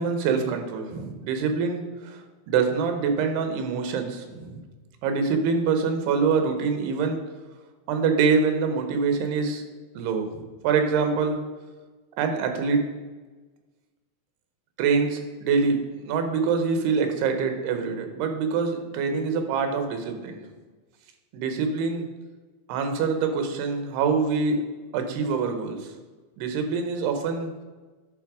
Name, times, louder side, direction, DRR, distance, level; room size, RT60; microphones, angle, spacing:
voice 1, 0.0-4.6 5.0-7.2 7.9-9.6 10.0-10.3 10.6-11.4 12.2-12.8 14.8-20.4 21.3-22.1 22.7-24.6 24.9-25.8 26.4-27.5, right 5 dB, 85° right, 6 dB, 3.0 m, -25 dB
10.5 x 4.2 x 4.7 m, 1.3 s
omnidirectional pair, 4.6 m